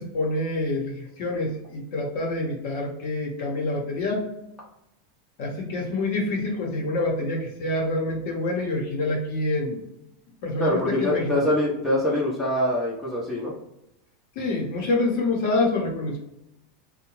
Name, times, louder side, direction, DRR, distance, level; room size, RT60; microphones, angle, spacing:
voice 1, 0.0-4.3 5.4-9.8 10.4-11.5 14.4-16.2, left 2 dB, 65° left, -1 dB, 0.9 m, -27 dB
voice 2, 10.6-13.5, left 1 dB, 15° left, -5 dB, 0.7 m, -24 dB
2.7 x 2.2 x 3.0 m, 0.82 s
supercardioid pair, 130°, 0 cm